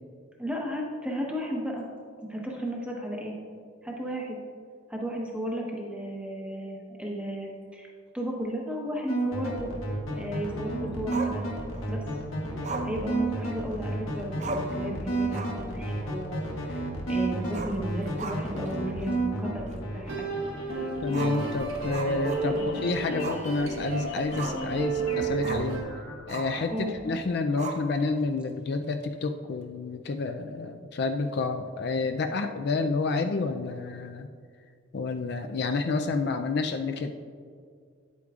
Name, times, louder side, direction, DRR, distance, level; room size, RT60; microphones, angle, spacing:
voice 1, 0.4-1.9 2.3-3.4 3.8-4.4 4.9-9.7 10.1-11.5 11.9-12.0 12.8-16.8 17.1-19.7 19.9-20.2 22.4-22.7 26.7-26.9, equal, 5° right, -1 dB, 1.0 m, -34 dB
sound 1, 9.1-27.1, right 2 dB, 85° left, 1.5 m, -33 dB
Growling, 11.1-11.9 12.6-13.9 14.1-14.2 14.4-14.8 15.2-15.7 16.0-16.1 17.4-18.7 19.0-19.1 19.7-19.8 21.1-22.7 23.2-23.5 23.8-24.7 25.4-25.7 26.3-26.6 27.6-28.2, right 3 dB, 35° right, 0.5 m, -38 dB
sound 2, 20.1-25.8, right 3 dB, 85° right, 1.2 m, -32 dB
voice 2, 21.0-25.8 26.3-34.3 34.9-37.1, left 3 dB, 55° left, 6 dB, 0.3 m, -29 dB
9.9 x 8.3 x 2.4 m, 2.1 s
head